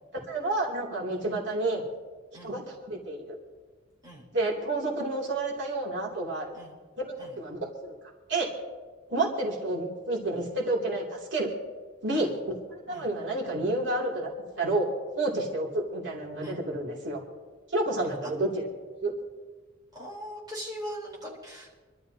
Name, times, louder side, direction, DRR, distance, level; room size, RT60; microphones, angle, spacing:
voice 1, 0.3-1.8 2.4-3.4 4.3-6.5 7.0-7.9 8.3-8.5 9.1-11.5 12.0-12.3 12.9-14.3 14.6-14.9 15.2-17.2 17.7-18.6 19.0-19.1, right 2 dB, 70° right, -3 dB, 2.8 m, -29 dB
voice 2, 19.9-21.7, equal, 20° right, -4 dB, 3.7 m, -41 dB
27.0 x 12.5 x 2.8 m, 1.4 s
head